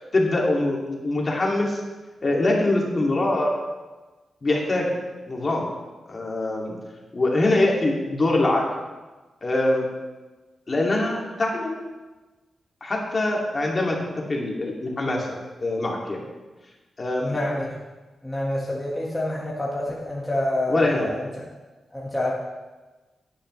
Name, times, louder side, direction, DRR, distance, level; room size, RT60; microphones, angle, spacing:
voice 1, 0.1-1.8 2.2-3.5 4.4-4.9 5.3-5.7 6.1-6.8 7.1-8.7 9.4-9.8 10.7-11.8 12.8-14.0 14.3-15.3 15.6-16.2 17.0-17.4 20.7-21.1, left 2 dB, 30° left, -2 dB, 2.4 m, -23 dB
voice 2, 17.2-17.7 18.2-21.4 21.9-22.3, left 1 dB, 5° left, -5 dB, 1.6 m, -27 dB
17.0 x 10.0 x 3.2 m, 1.2 s
wide cardioid pair, 155°, 0 cm